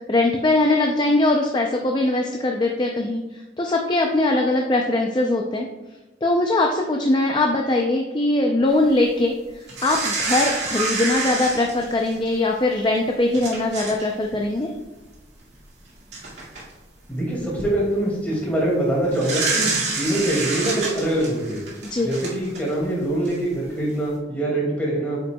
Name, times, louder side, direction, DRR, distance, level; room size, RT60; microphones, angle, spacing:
voice 1, 0.1-3.2 3.6-5.7 6.2-9.3 9.8-14.7 21.9-22.1, left 2 dB, 25° left, 1 dB, 0.5 m, -21 dB
sound 1, 9.7-12.3 12.9-13.0 13.3-14.1 14.3-14.5 15.6-15.7 16.1-16.6 17.3-17.7 19.1-22.8 23.2-23.3, right 3 dB, 70° right, 2.1 m, -27 dB
voice 2, 17.1-21.6 22.0-25.2, right 1 dB, 10° left, -5 dB, 2.2 m, -24 dB
8.4 x 5.6 x 2.3 m, 1.1 s
head